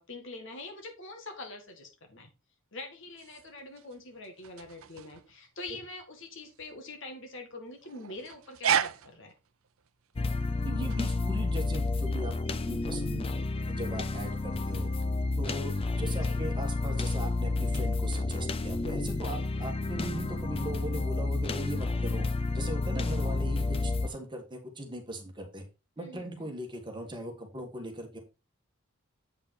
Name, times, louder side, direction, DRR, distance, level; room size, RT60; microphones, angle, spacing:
voice 1, 0.0-2.3 2.7-9.3 16.2-16.4 26.0-26.5, left 2 dB, 60° left, 5 dB, 2.0 m, -44 dB
Bulldog Howl, 3.0-17.4, right 8 dB, 75° right, 0.6 m, -38 dB
sound 1, 10.2-24.1, left 3 dB, 25° left, 0.4 m, -30 dB
voice 2, 10.6-12.3 12.6-13.3 13.7-14.9 15.4-22.3 22.5-25.6 26.0-28.2, right 1 dB, 20° right, 3 dB, 1.8 m, -39 dB
8.2 x 5.5 x 4.3 m, 0.28 s
head